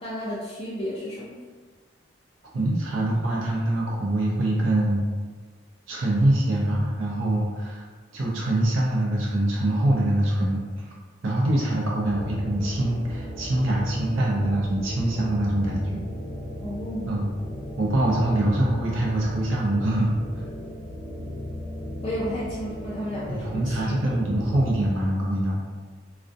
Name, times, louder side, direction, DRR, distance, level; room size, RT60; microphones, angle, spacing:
voice 1, 0.0-1.4 16.6-17.2 22.0-24.2, equal, 30° left, -9 dB, 0.4 m, -33 dB
voice 2, 2.5-5.0 5.9-7.9 8.1-10.9 11.2-16.0 17.0-17.3 17.8-20.4 23.3-25.7, right 1 dB, 90° right, -4 dB, 0.5 m, -24 dB
sound 1, 12.0-24.8, left 1 dB, 40° right, 0.9 m, -36 dB
2.4 x 2.1 x 2.6 m, 1.5 s
head